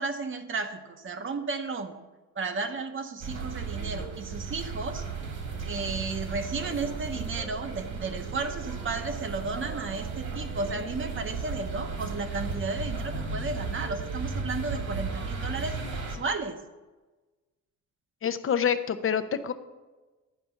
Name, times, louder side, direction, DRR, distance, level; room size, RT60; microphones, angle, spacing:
voice 1, 0.0-2.0 2.3-5.0 5.6-15.8 16.1-16.6, right 3 dB, 40° right, 7 dB, 1.1 m, -33 dB
sound 1, 3.2-16.2, right 4 dB, 70° right, 2.3 m, -35 dB
voice 2, 18.2-19.5, left 8 dB, 45° left, 11 dB, 0.8 m, -27 dB
11.0 x 5.1 x 7.0 m, 1.2 s
cardioid pair, 90°, 30 cm